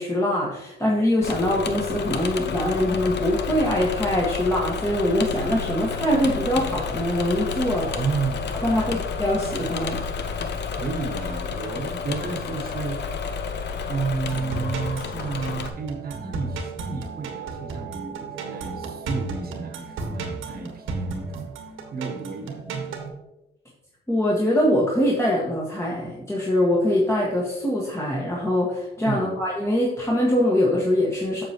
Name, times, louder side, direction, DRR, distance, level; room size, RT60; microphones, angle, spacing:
voice 1, 0.0-7.9 8.6-10.0 24.1-31.4, left 1 dB, 15° left, -5 dB, 1.6 m, -23 dB
Engine / Mechanisms, 1.2-15.7, left 5 dB, 60° left, 0.8 m, -30 dB
voice 2, 7.8-9.0 10.6-13.0 13.9-21.5 21.9-23.2 29.0-29.3, right 5 dB, 50° right, 4 dB, 1.3 m, -32 dB
sound 1, 14.3-23.1, right 3 dB, 80° right, 1.4 m, -34 dB
7.8 x 6.6 x 2.9 m, 0.94 s
cardioid pair, 90°, 20 cm